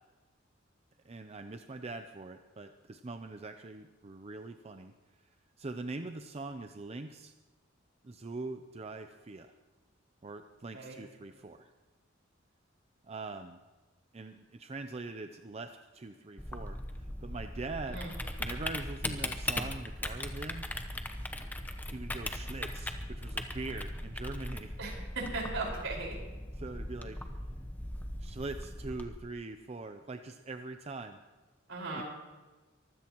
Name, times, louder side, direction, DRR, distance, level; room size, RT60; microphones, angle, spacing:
voice 1, 1.0-4.9 5.6-7.3 8.0-9.5 10.2-11.7 13.0-13.6 14.1-18.0 18.4-20.7 21.9-24.7 26.5-27.2 28.2-31.2 31.9-32.0, right 3 dB, 30° right, 7 dB, 0.6 m, -42 dB
Typing, 16.4-29.0, left 1 dB, 10° left, 0.9 m, -39 dB
voice 2, 24.8-26.2 31.7-32.0, right 3 dB, 75° right, -2 dB, 5.1 m, -37 dB
23.5 x 15.5 x 3.0 m, 1.2 s
head